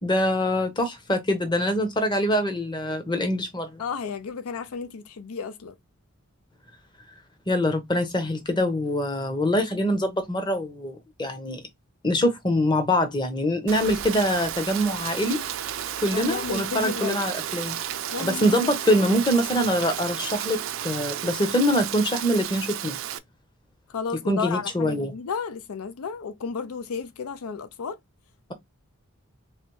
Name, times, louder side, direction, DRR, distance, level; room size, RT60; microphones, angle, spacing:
voice 1, 0.0-3.8 7.5-11.6 12.0-15.4 16.0-17.8 18.2-23.0 24.3-25.1, equal, 20° left, 0.8 m, -24 dB
voice 2, 3.8-5.8 16.1-17.2 18.1-18.8 23.9-28.0, left 5 dB, 85° left, 0.5 m, -32 dB
Rain, 13.7-23.2, right 10 dB, 65° right, 0.4 m, -32 dB
3.2 x 2.9 x 3.1 m
head